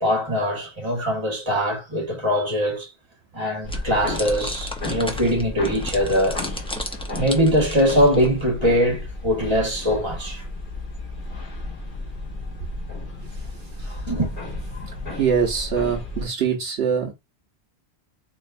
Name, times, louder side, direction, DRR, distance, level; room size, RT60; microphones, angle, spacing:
voice 1, 0.0-2.9 3.3-6.4 7.1-10.4 13.8-14.3, equal, 25° right, 1.5 m, -22 dB
sound 1, 3.6-16.2, left 2 dB, 50° left, 1.6 m, -33 dB
sound 2, 3.7-8.4, left 1 dB, 5° left, 0.5 m, -35 dB
voice 2, 15.2-17.1, right 7 dB, 75° right, 1.0 m, -23 dB
4.2 x 2.9 x 2.5 m
omnidirectional pair, 1.1 m